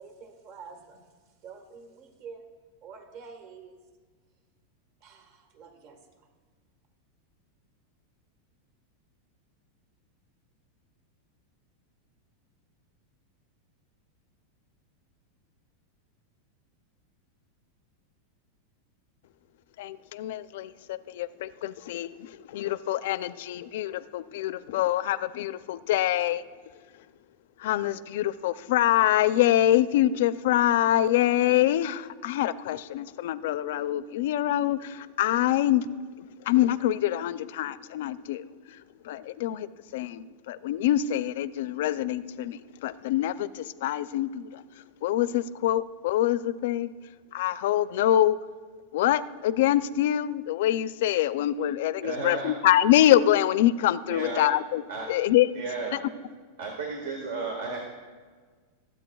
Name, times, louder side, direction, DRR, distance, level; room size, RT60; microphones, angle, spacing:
voice 1, 0.0-2.5 2.8-3.8 5.0-6.3, right 5 dB, 45° right, 6 dB, 1.4 m, -47 dB
voice 2, 19.8-26.4 27.6-35.9 36.2-39.7 39.9-44.6 45.0-46.9 47.3-48.4 48.9-54.8 55.1-55.5 55.9-56.0, left 13 dB, 70° left, 15 dB, 0.4 m, -25 dB
voice 3, 52.0-52.5 54.1-54.5 54.9-55.1 55.5-56.0 56.6-57.8, right 3 dB, 80° right, 1 dB, 1.6 m, -33 dB
22.0 x 8.3 x 2.3 m, 1.5 s
supercardioid pair, 145°, 0 cm